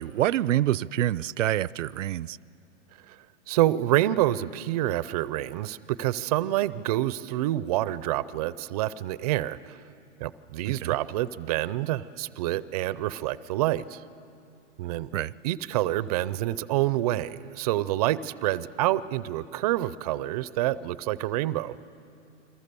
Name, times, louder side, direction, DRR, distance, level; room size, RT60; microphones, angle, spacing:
voice 1, 0.0-2.4 10.8-11.0 15.1-15.3, right 13 dB, 80° right, 0.6 m, -26 dB
voice 2, 3.5-9.8 10.2-14.0 14.8-15.1 15.4-21.7, right 15 dB, 30° right, 0.5 m, -27 dB
29.0 x 22.5 x 6.9 m
hypercardioid pair, 145°, 37 cm